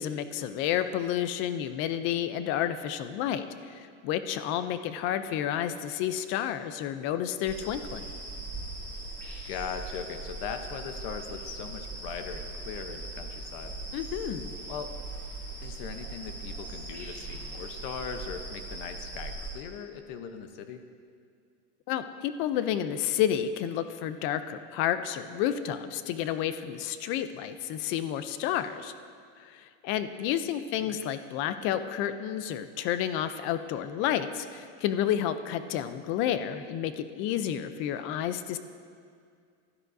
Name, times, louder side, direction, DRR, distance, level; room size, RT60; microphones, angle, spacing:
voice 1, 0.0-8.1 13.9-14.5 21.9-28.9 29.4-38.6, left 10 dB, 35° left, 11 dB, 0.5 m, -30 dB
sound 1, 7.5-19.5, right 2 dB, 5° left, 3.0 m, -40 dB
voice 2, 9.4-13.7 14.7-14.9 15.6-20.8 30.8-31.0, left 7 dB, 50° left, 7 dB, 0.8 m, -39 dB
15.5 x 12.5 x 2.6 m, 2.2 s
supercardioid pair, 160°, 36 cm